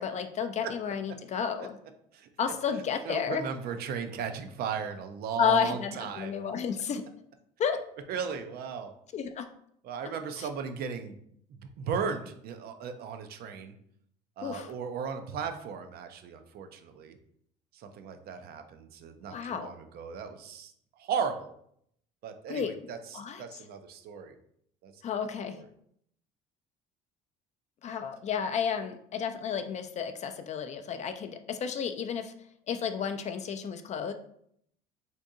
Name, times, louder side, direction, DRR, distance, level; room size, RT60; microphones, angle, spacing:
voice 1, 0.0-1.8 2.4-3.5 5.4-7.1 7.6-7.8 9.1-9.5 10.4-10.5 14.4-14.7 19.3-19.7 22.5-22.7 23.1-23.4 25.0-25.6 27.8-32.3 32.7-34.1, left 7 dB, 35° left, 8 dB, 0.4 m, -32 dB
voice 2, 3.0-6.3 8.1-8.9 9.8-11.2 11.8-13.7 14.4-17.2 17.7-20.7 21.0-21.5 22.2-24.4 24.8-25.0 25.5-25.6, right 6 dB, 55° right, 7 dB, 0.4 m, -36 dB
2.7 x 2.6 x 3.5 m, 0.69 s
supercardioid pair, 75°, 19 cm